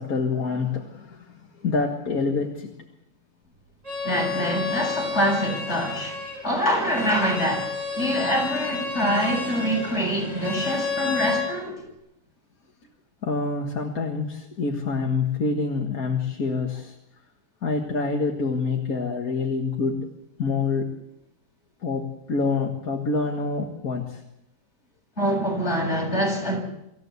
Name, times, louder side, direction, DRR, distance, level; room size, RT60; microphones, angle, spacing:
voice 1, 0.0-2.7 13.2-16.9 17.6-20.1 20.4-20.9 21.8-24.2, left 4 dB, 50° left, 2.2 m, -26 dB
Bowed string instrument, 3.8-11.5, left 4 dB, 20° right, 7.5 m, -30 dB
voice 2, 4.0-11.8 25.2-26.6, equal, 35° left, 7.6 m, -25 dB
25.0 x 14.5 x 8.2 m
omnidirectional pair, 1.9 m